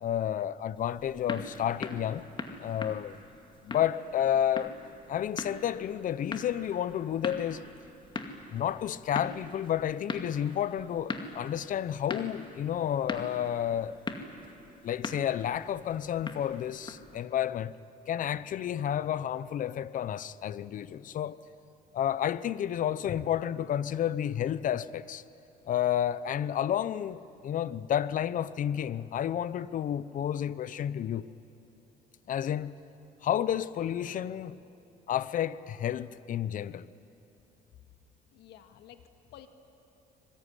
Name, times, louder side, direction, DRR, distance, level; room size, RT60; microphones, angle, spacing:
voice 1, 0.0-2.2 2.6-3.2 3.6-4.8 5.1-7.6 8.5-14.0 14.8-17.7 18.1-21.4 21.9-25.2 25.7-31.3 32.3-32.7 33.2-34.6 35.1-36.9, left 10 dB, 50° left, 0.8 m, -31 dB
sound 1, 0.8-17.2, left 3 dB, 30° left, 2.3 m, -41 dB
voice 2, 38.3-39.5, left 11 dB, 80° left, 1.9 m, -52 dB
25.5 x 21.5 x 9.9 m
cardioid pair, 110°, 17 cm